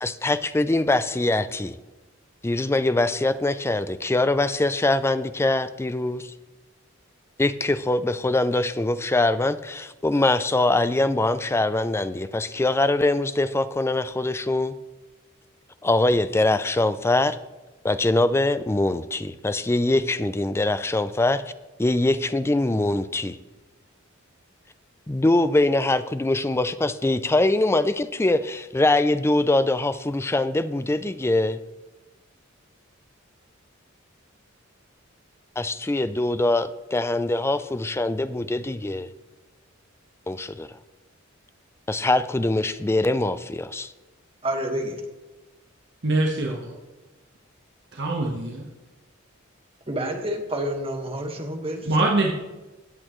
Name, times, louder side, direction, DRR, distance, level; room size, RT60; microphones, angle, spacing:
voice 1, 0.0-1.8 2.4-6.3 7.4-14.8 15.8-17.4 17.8-21.4 21.8-23.4 25.1-31.6 35.6-39.1 40.3-40.7 41.9-43.9, left 2 dB, 10° left, 12 dB, 0.4 m, -23 dB
voice 2, 44.4-45.0 49.9-51.9, right 1 dB, 25° right, 3 dB, 1.5 m, -28 dB
voice 3, 46.0-46.8 47.9-48.7 51.8-52.3, right 2 dB, 60° right, 0 dB, 1.2 m, -23 dB
16.5 x 8.6 x 3.1 m, 1.1 s
head